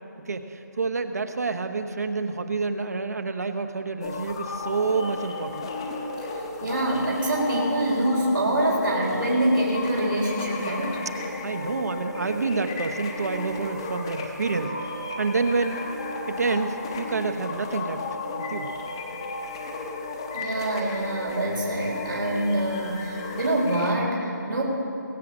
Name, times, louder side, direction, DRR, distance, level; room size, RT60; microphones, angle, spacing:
voice 1, 0.3-5.7 11.4-14.7 15.2-15.8 16.3-18.1 18.4-18.7, right 4 dB, 55° right, 8 dB, 1.0 m, -28 dB
sound 1, 4.0-23.9, left 3 dB, 15° left, 0.7 m, -34 dB
voice 2, 6.3-11.0 20.3-24.6, right 1 dB, 85° right, -3 dB, 3.7 m, -25 dB
21.5 x 7.7 x 6.2 m, 2.9 s
hypercardioid pair, 175°, 10 cm